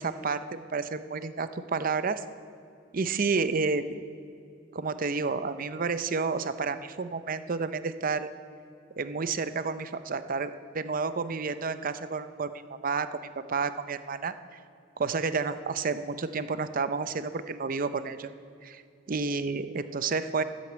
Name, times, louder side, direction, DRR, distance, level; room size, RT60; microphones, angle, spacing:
voice 1, 0.0-2.2 2.9-3.8 4.7-8.3 9.0-13.1 13.5-14.3 15.0-18.3 18.6-18.8 19.1-20.4, right 4 dB, 45° right, 12 dB, 0.6 m, -30 dB
13.5 x 8.3 x 8.0 m, 2.5 s
head